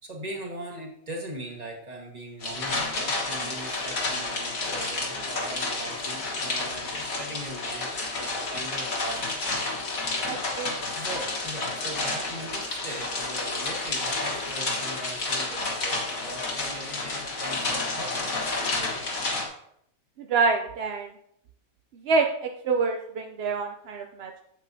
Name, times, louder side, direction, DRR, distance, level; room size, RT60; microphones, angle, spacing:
voice 1, 0.0-9.8 10.9-19.1, right 1 dB, 25° right, 0 dB, 1.6 m, -40 dB
sound 1, 2.4-19.5, left 3 dB, 65° left, 1.9 m, -30 dB
voice 2, 10.2-10.7 20.2-21.1 22.0-24.4, right 4 dB, 65° right, 3 dB, 0.6 m, -27 dB
8.2 x 8.1 x 2.7 m, 0.73 s
omnidirectional pair, 1.6 m